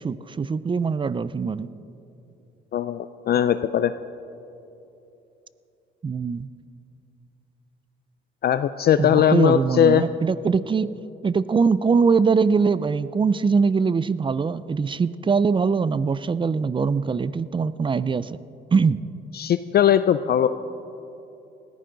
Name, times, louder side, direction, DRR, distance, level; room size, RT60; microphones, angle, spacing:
voice 1, 0.0-1.7 6.0-6.5 9.0-10.9 11.2-18.4 18.7-19.0, right 5 dB, 25° right, 17 dB, 0.4 m, -22 dB
voice 2, 2.7-3.9 8.4-10.0 19.3-20.5, left 10 dB, 50° left, 12 dB, 0.4 m, -19 dB
19.5 x 14.5 x 3.9 m, 2.9 s
cardioid pair, 90°, 20 cm